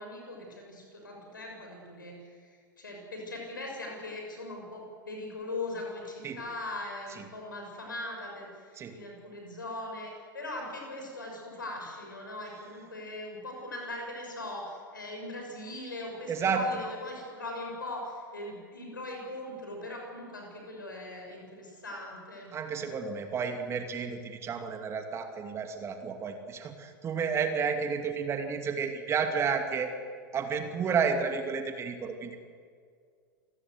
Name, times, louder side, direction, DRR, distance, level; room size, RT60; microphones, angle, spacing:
voice 1, 0.0-22.5, left 2 dB, 75° left, 1 dB, 6.4 m, -40 dB
voice 2, 16.3-16.7 22.5-29.9 30.3-32.4, right 6 dB, 25° right, 6 dB, 2.6 m, -31 dB
28.5 x 19.0 x 8.0 m, 2.1 s
figure-of-eight pair, 90°, 11 cm